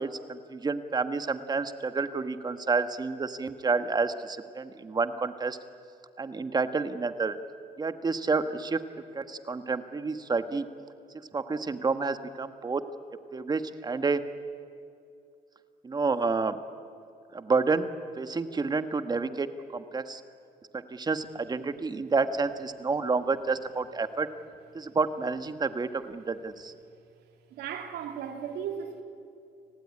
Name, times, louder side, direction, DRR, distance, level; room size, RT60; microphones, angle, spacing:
voice 1, 0.0-5.6 6.2-7.4 7.8-8.8 9.1-10.6 11.3-12.8 13.3-14.2 15.8-16.6 17.3-17.9 18.2-19.5 19.7-20.2 20.9-24.3 24.7-26.7, right 4 dB, 25° right, 10 dB, 1.5 m, -29 dB
voice 2, 25.5-25.9 26.1-26.2 26.6-26.7 27.5-29.0, right 8 dB, 75° right, 5 dB, 3.2 m, -38 dB
30.0 x 19.0 x 9.8 m, 2.4 s
cardioid pair, 110°, 17 cm